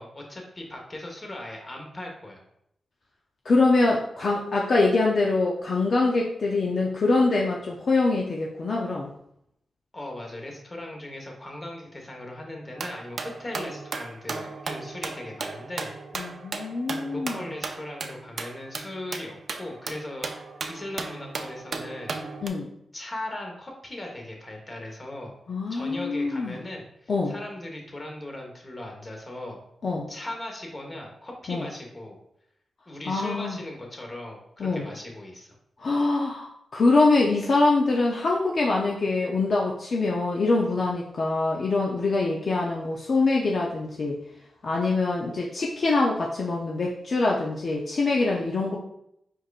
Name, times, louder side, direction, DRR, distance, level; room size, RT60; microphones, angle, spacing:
voice 1, 0.0-2.4 9.9-15.9 17.1-20.3 20.7-22.2 22.9-25.3 25.7-29.6 30.1-32.2 32.9-35.5, left 1 dB, 35° left, 1 dB, 1.3 m, -38 dB
voice 2, 3.4-9.1 16.1-17.4 22.4-22.7 25.5-26.6 27.1-27.3 29.8-30.1 31.5-31.7 33.1-33.6 34.6-34.8 35.8-44.2 44.6-48.8, left 3 dB, 60° left, -2 dB, 0.6 m, -24 dB
sound 1, 12.8-22.5, right 4 dB, 65° right, 0.5 m, -36 dB
4.7 x 4.6 x 2.5 m, 0.76 s
cardioid pair, 70°, 0 cm